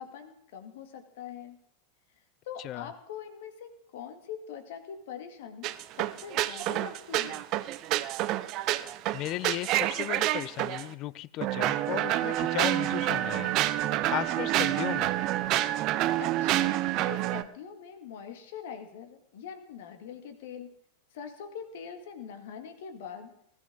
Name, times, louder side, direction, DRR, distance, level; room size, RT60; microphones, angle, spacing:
voice 1, 0.0-1.6 2.4-7.5 16.2-20.7 21.1-23.3, left 7 dB, 55° left, 2.1 m, -43 dB
voice 2, 2.6-2.9 9.1-15.2, left 16 dB, 35° left, 0.5 m, -36 dB
sound 1, 5.6-10.8 11.4-17.4, right 14 dB, 40° right, 0.6 m, -28 dB
19.5 x 14.0 x 3.9 m
figure-of-eight pair, 90°, 0 cm